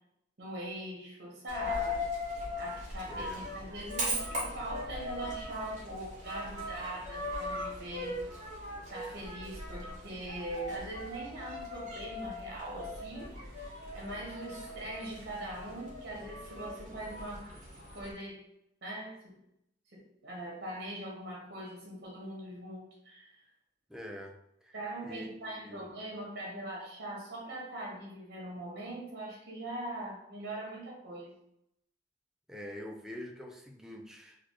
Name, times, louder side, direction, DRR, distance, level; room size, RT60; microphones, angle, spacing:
voice 1, 0.4-2.0 2.6-8.2 8.9-17.5 17.9-18.4 18.8-19.4 19.9-23.4 24.7-31.4, right 1 dB, 60° right, -3 dB, 1.2 m, -42 dB
Coin (dropping), 1.5-18.1, left 1 dB, 40° right, 1.3 m, -39 dB
voice 2, 3.1-3.5 23.9-24.8 25.0-25.8 32.5-34.4, equal, 5° right, 1 dB, 0.4 m, -45 dB
4.1 x 2.4 x 3.0 m, 0.78 s
head